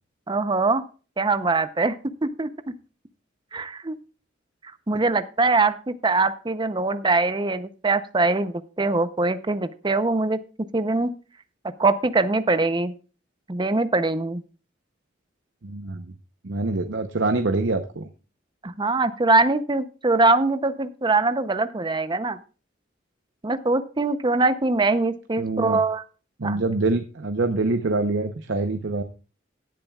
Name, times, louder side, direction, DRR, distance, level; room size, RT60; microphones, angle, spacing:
voice 1, 0.3-0.9 1.2-2.0 2.2-2.5 3.5-4.0 4.9-10.4 10.7-11.1 11.8-12.9 13.5-14.4 18.6-22.4 23.4-26.0 26.4-26.6, right 3 dB, 25° right, 12 dB, 0.6 m, -22 dB
voice 2, 15.6-16.1 16.4-18.1 25.4-25.8 26.4-29.0, right 3 dB, 70° right, 7 dB, 0.8 m, -25 dB
17.0 x 8.8 x 2.3 m, 0.35 s
head